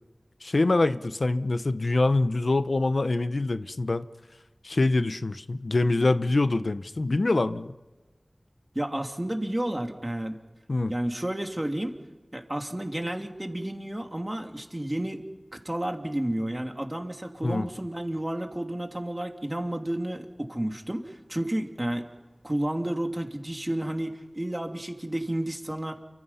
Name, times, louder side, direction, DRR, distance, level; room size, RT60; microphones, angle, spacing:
voice 1, 0.4-4.1 4.6-7.7 10.7-10.9 17.4-17.7, left 2 dB, 75° left, 12 dB, 0.8 m, -25 dB
voice 2, 8.7-10.4 10.9-12.0 12.3-15.2 15.5-22.1 22.4-25.9, right 1 dB, 25° right, 4 dB, 2.7 m, -31 dB
29.0 x 24.5 x 5.7 m, 1.2 s
wide cardioid pair, 50°, 0 cm